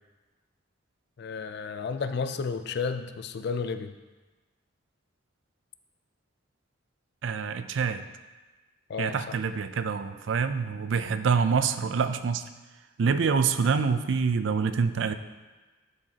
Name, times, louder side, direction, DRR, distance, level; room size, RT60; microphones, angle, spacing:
voice 1, 1.2-3.9 8.9-9.3, left 5 dB, 55° left, 10 dB, 0.4 m, -32 dB
voice 2, 7.2-8.0 9.0-12.4 13.0-15.1, right 5 dB, 70° right, 11 dB, 0.4 m, -26 dB
11.0 x 5.1 x 2.8 m, 1.2 s
head